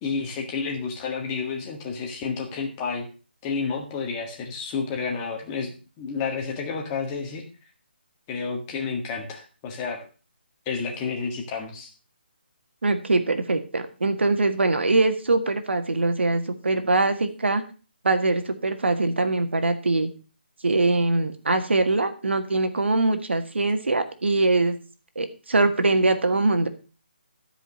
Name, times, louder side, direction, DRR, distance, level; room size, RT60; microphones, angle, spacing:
voice 1, 0.0-3.1 3.4-5.7 6.0-7.4 8.3-10.0 10.6-11.9, left 5 dB, 15° left, 1 dB, 1.6 m, -30 dB
voice 2, 12.8-17.6 18.0-20.1 20.6-24.8 25.1-26.7, right 2 dB, 85° right, 8 dB, 1.7 m, -22 dB
12.5 x 5.1 x 6.1 m, 0.36 s
hypercardioid pair, 170°, 6 cm